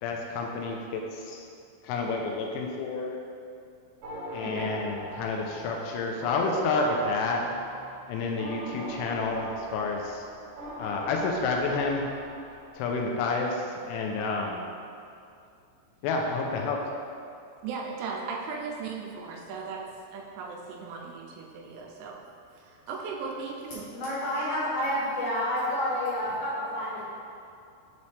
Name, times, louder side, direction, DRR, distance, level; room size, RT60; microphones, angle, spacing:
voice 1, 0.0-1.4 1.8-3.2 4.3-7.4 8.1-10.2 10.8-12.1 12.8-14.6 16.0-16.8, left 3 dB, 85° left, 1 dB, 3.0 m, -29 dB
sound 1, 4.0-12.7, right 1 dB, 70° right, 2.1 m, -40 dB
voice 2, 17.6-19.8 20.1-22.2 22.5-23.9, right 5 dB, 85° right, 0 dB, 2.9 m, -37 dB
voice 3, 23.9-27.1, equal, 65° left, -10 dB, 2.6 m, -29 dB
7.1 x 4.2 x 3.2 m, 2.4 s
omnidirectional pair, 5.5 m